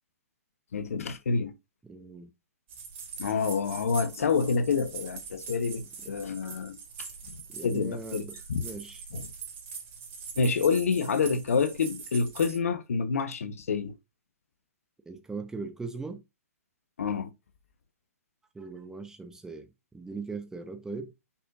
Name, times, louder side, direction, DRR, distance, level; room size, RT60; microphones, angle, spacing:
voice 1, 0.7-1.5 3.2-6.8 7.6-8.2 8.5-8.7 9.1-9.2 10.4-13.9 17.0-17.3, left 5 dB, 65° left, 1.2 m, -28 dB
voice 2, 1.8-2.3 6.0-6.1 7.5-9.0 15.1-16.2 18.5-21.1, right 4 dB, 5° right, 1.0 m, -40 dB
sound 1, 2.7-12.6, right 6 dB, 50° right, 3.4 m, -43 dB
6.3 x 5.9 x 2.7 m
figure-of-eight pair, 125°, 8 cm